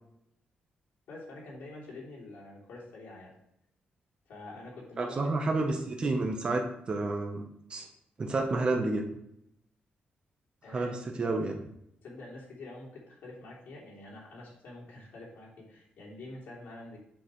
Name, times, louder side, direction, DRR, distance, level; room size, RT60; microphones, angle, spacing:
voice 1, 1.1-3.3 4.3-5.8 6.1-6.4 10.6-11.2 12.0-17.0, left 2 dB, 85° left, -5 dB, 3.1 m, -47 dB
voice 2, 5.0-7.4 7.7-7.9 8.2-9.0 10.7-11.6, right 2 dB, 30° right, 2 dB, 1.0 m, -30 dB
7.8 x 6.5 x 3.2 m, 0.76 s
wide cardioid pair, 165°, 3 cm